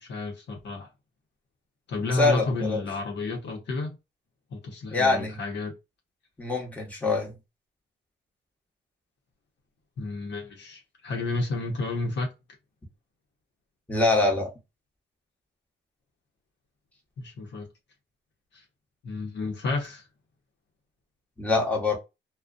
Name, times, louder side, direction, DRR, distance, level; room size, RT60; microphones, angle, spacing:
voice 1, 0.0-0.9 1.9-4.0 4.5-5.7 10.0-12.3 17.2-17.7 19.0-20.0, left 3 dB, 60° left, 0.9 m, -31 dB
voice 2, 2.1-2.8 4.9-5.4 6.4-7.3 13.9-14.5 21.4-22.0, left 3 dB, 5° left, 1.1 m, -24 dB
2.5 x 2.2 x 2.4 m
cardioid pair, 90°, 20 cm